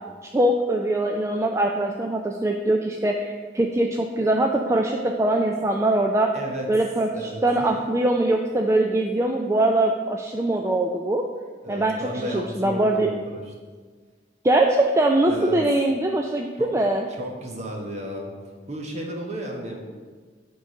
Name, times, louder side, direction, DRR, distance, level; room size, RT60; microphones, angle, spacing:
voice 1, 0.3-6.3 6.7-11.2 11.7-11.9 12.3-13.1 14.4-17.0, right 1 dB, 15° right, 2 dB, 0.4 m, -22 dB
voice 2, 6.3-6.7 7.1-7.7 11.6-13.5 15.3-15.6 16.5-18.3 18.7-19.8, right 1 dB, 40° right, 1 dB, 1.3 m, -34 dB
9.2 x 3.9 x 6.2 m, 1.5 s
head